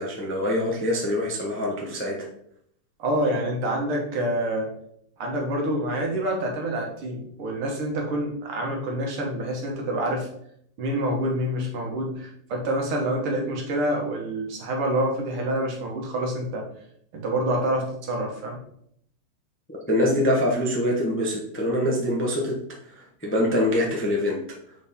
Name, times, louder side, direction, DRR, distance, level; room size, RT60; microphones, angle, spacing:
voice 1, 0.0-2.3 19.7-22.6 22.9-24.4, left 1 dB, 15° left, -2 dB, 0.5 m, -24 dB
voice 2, 3.0-4.7 5.2-10.3 10.8-16.6 17.1-18.6, right 1 dB, 85° right, 0 dB, 2.2 m, -27 dB
6.4 x 4.2 x 3.6 m, 0.68 s
omnidirectional pair, 2.3 m